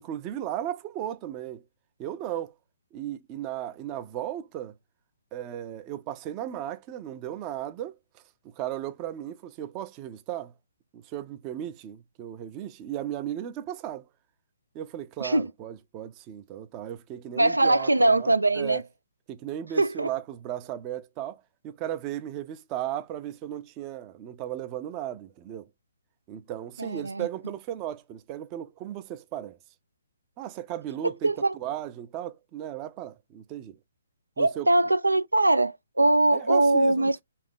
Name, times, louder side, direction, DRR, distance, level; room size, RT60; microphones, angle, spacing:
voice 1, 0.0-1.6 2.0-2.5 2.9-4.7 5.3-8.0 8.4-10.5 10.9-14.1 14.7-18.8 19.3-25.7 26.3-29.6 30.4-33.8 34.4-34.7 36.3-37.2, right 11 dB, 25° right, 0.5 m, -36 dB
voice 2, 17.4-18.8 19.8-20.1 26.8-27.3 31.2-31.6 34.4-37.2, right 2 dB, 90° right, 0.3 m, -22 dB
4.1 x 2.8 x 3.8 m
figure-of-eight pair, 135°, 0 cm